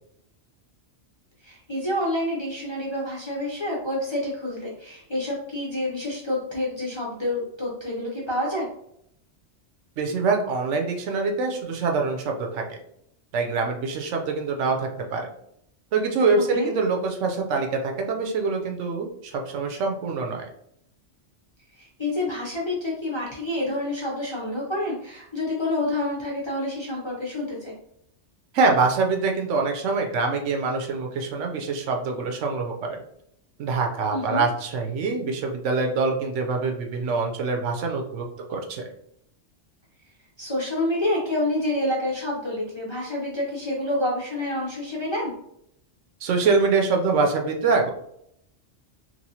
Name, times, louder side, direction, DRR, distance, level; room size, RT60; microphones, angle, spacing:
voice 1, 1.4-8.7 16.5-16.7 21.8-27.7 34.1-34.4 40.4-45.3, left 1 dB, 35° left, -5 dB, 0.5 m, -28 dB
voice 2, 10.0-12.8 13.3-15.3 15.9-20.5 28.5-33.0 33.6-38.2 38.5-38.8 46.2-47.9, right 4 dB, 80° right, 3 dB, 0.9 m, -24 dB
3.0 x 2.5 x 2.7 m, 0.73 s
omnidirectional pair, 1.2 m